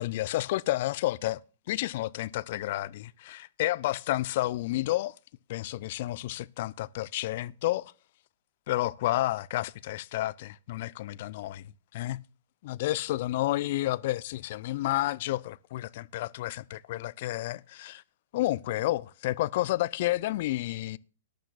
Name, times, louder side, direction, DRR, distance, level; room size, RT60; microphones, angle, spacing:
voice 1, 0.0-1.4 1.7-5.1 5.5-7.9 8.7-11.6 11.9-12.2 12.6-18.0 18.3-21.0, left 16 dB, 50° left, 0.4 m, -30 dB
18.5 x 11.5 x 2.4 m
figure-of-eight pair, 110°, 0 cm